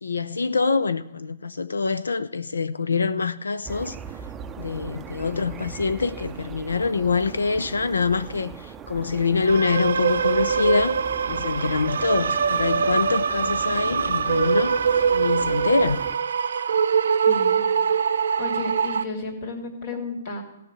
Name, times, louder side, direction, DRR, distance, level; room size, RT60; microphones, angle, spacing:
voice 1, 0.0-4.0 4.6-11.0 11.3-14.8 15.1-16.0, left 4 dB, 85° left, 0.5 m, -25 dB
sound 1, 3.6-16.2, right 7 dB, 15° right, 0.5 m, -40 dB
sound 2, 9.5-19.0, right 6 dB, 75° right, 0.6 m, -23 dB
voice 2, 17.3-17.6 17.9-18.1 18.4-20.4, left 3 dB, 50° left, 3.1 m, -33 dB
15.5 x 5.9 x 8.4 m
hypercardioid pair, 130°, 0 cm